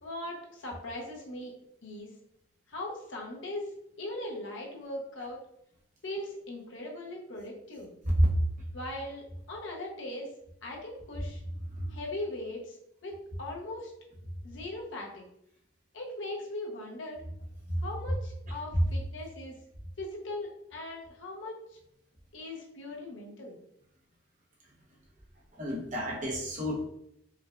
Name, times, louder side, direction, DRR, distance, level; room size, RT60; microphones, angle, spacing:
voice 1, 0.0-1.5 1.8-2.1 2.7-3.7 4.0-5.4 6.0-7.9 8.7-10.3 10.6-11.4 11.9-12.8 13.0-13.9 14.4-15.3 15.9-17.2 17.8-19.6 20.0-21.8 22.3-23.6, left 1 dB, 75° left, -1 dB, 0.9 m, -39 dB
voice 2, 25.6-26.8, equal, 40° right, -2 dB, 0.9 m, -28 dB
4.7 x 2.4 x 2.4 m, 0.76 s
head